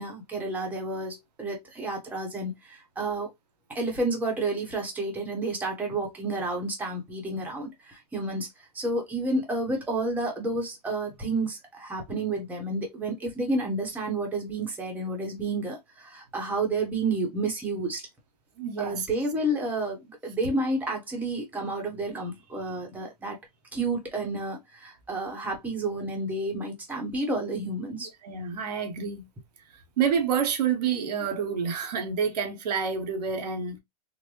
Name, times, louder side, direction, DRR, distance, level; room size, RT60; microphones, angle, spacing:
voice 1, 0.0-3.3 3.7-18.0 18.8-23.4 23.7-28.1, right 2 dB, 10° right, 1.0 m, -30 dB
voice 2, 18.6-19.1 28.2-29.2 30.0-33.8, right 7 dB, 80° right, 1.1 m, -28 dB
3.9 x 2.1 x 3.1 m
supercardioid pair, 150°, 20 cm